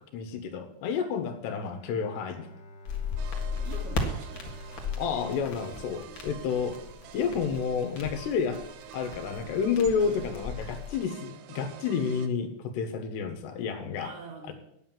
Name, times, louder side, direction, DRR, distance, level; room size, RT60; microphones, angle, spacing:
voice 1, 0.1-2.5 5.0-6.8 7.1-8.6 8.9-14.1 14.5-14.6, left 6 dB, 80° left, 7 dB, 3.3 m, -30 dB
Bowed string instrument, 1.6-6.9, right 1 dB, 35° left, 2.0 m, -49 dB
sound 1, 2.9-10.9, left 4 dB, 55° left, 1.3 m, -36 dB
sound 2, 3.2-12.3, right 10 dB, 90° right, 3.1 m, -48 dB
voice 2, 3.6-4.5 10.0-10.5 14.0-14.5, right 5 dB, 70° right, 1 dB, 3.8 m, -44 dB
9.3 x 8.8 x 7.3 m, 0.76 s
omnidirectional pair, 4.9 m